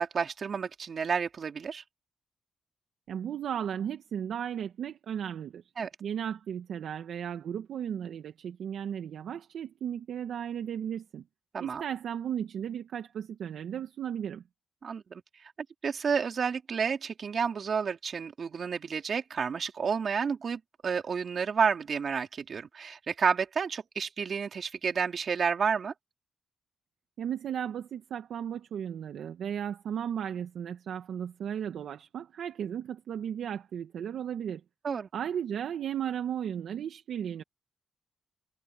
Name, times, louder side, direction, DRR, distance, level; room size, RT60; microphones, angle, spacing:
voice 1, 0.0-1.8 5.8-5.9 11.5-11.8 14.8-15.2 15.8-25.9 34.8-35.1, right 6 dB, 60° right, 3.8 m, -30 dB
voice 2, 3.1-5.6 6.0-11.2 11.6-14.4 27.2-34.6 35.1-37.4, right 9 dB, 75° right, 1.6 m, -35 dB
supercardioid pair, 55°, 0 cm